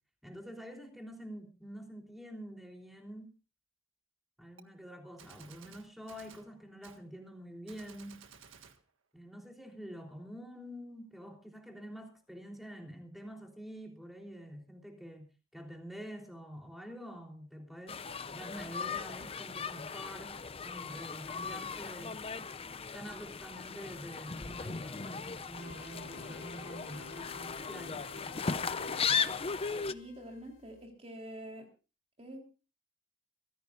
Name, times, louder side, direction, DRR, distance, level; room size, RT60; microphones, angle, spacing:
voice 1, 0.2-3.3 4.4-8.3 9.1-18.0 18.3-22.2 22.9-28.1, equal, ahead, 3.5 m, -47 dB
Gunshot gunfire, 4.6-4.7 5.2-6.5 6.8-7.0 7.7-8.8, right 6 dB, 80° right, 1.7 m, -55 dB
sound 1, 17.9-29.9, left 5 dB, 30° left, 0.6 m, -37 dB
sound 2, 25.6-30.8, left 4 dB, 65° left, 4.6 m, -49 dB
voice 2, 29.9-31.7 32.2-32.4, equal, 30° right, 3.8 m, -46 dB
24.0 x 15.5 x 2.5 m
head